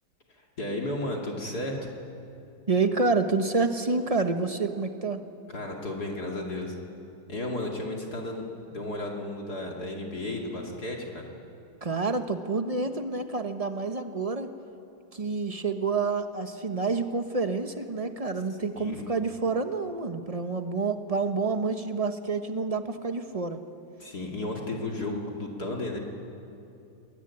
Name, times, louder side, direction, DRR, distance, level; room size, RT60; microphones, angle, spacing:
voice 1, 0.3-1.9 5.5-6.7 7.3-8.4 8.7-11.3 18.8-19.0 24.0-26.0, left 1 dB, 50° left, 0 dB, 2.9 m, -33 dB
voice 2, 2.7-5.2 11.8-14.5 15.1-23.6, right 4 dB, 25° right, 7 dB, 0.9 m, -28 dB
27.0 x 21.5 x 9.7 m, 2.7 s
omnidirectional pair, 2.2 m